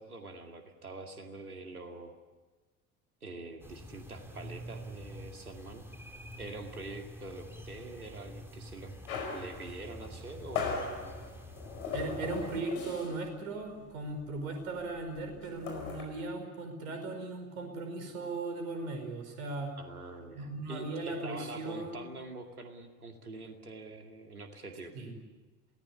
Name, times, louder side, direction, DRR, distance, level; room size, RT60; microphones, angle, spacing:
voice 1, 0.0-2.2 3.2-5.8 6.4-8.9 9.3-11.2 19.8-24.9, right 2 dB, 85° right, 5 dB, 2.3 m, -45 dB
sound 1, 3.6-12.6, equal, 5° right, 4.5 m, -47 dB
sound 2, 9.1-13.3 13.6-13.8 14.1-16.0, left 5 dB, 65° left, 5.0 m, -38 dB
voice 2, 11.9-19.8 20.3-22.1 24.9-25.1, right 2 dB, 70° right, 5 dB, 5.2 m, -38 dB
27.5 x 18.5 x 8.2 m, 1.2 s
figure-of-eight pair, 65°, 43 cm